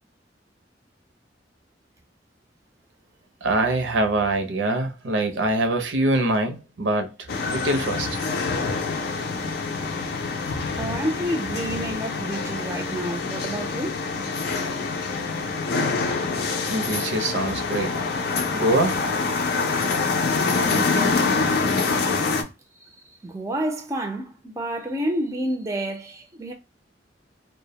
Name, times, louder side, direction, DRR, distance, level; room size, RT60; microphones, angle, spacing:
voice 1, 3.4-7.1 7.5-8.1 16.7-18.0 18.5-19.0, right 2 dB, 80° right, 0.6 m, -23 dB
sound 1, 7.3-22.4, left 4 dB, 60° left, 0.5 m, -25 dB
voice 2, 10.8-14.0 15.3-15.5 23.2-26.5, right 1 dB, 15° right, 0.4 m, -29 dB
2.2 x 2.0 x 2.7 m
head